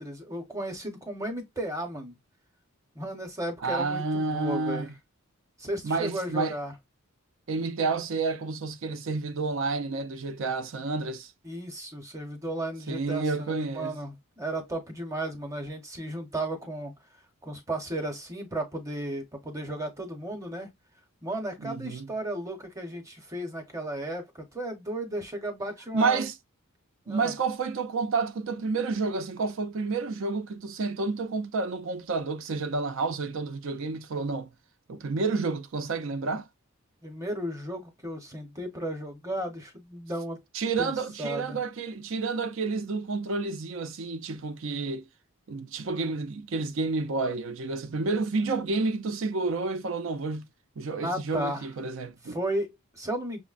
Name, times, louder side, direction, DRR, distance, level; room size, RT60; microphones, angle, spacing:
voice 1, 0.0-2.2 2.9-4.9 5.6-6.7 11.4-16.9 17.4-20.7 21.2-26.2 27.1-27.3 37.0-40.4 40.8-40.9 41.2-41.6 51.0-51.7 52.2-53.4, right 1 dB, 15° right, 0.8 m, -34 dB
voice 2, 3.6-4.9 5.8-6.6 7.5-11.3 12.9-14.0 21.6-22.1 25.9-26.3 27.1-34.5 34.9-36.4 40.5-45.1 45.5-50.5 50.8-52.4, right 3 dB, 60° right, 0.5 m, -30 dB
6.0 x 2.1 x 2.4 m
head